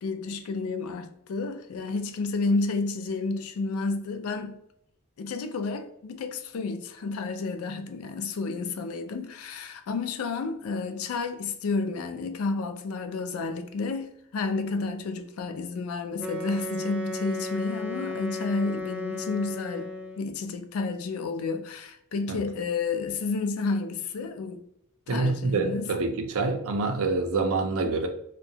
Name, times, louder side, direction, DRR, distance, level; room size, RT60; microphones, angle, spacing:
voice 1, 0.0-4.6 5.2-24.6 25.1-25.9, left 3 dB, 80° left, 0.4 m, -31 dB
Wind instrument woodwind instrument, 16.2-20.3, left 2 dB, 10° right, 0.3 m, -35 dB
voice 2, 25.1-28.1, right 3 dB, 75° right, 0.5 m, -26 dB
2.7 x 2.2 x 2.7 m
head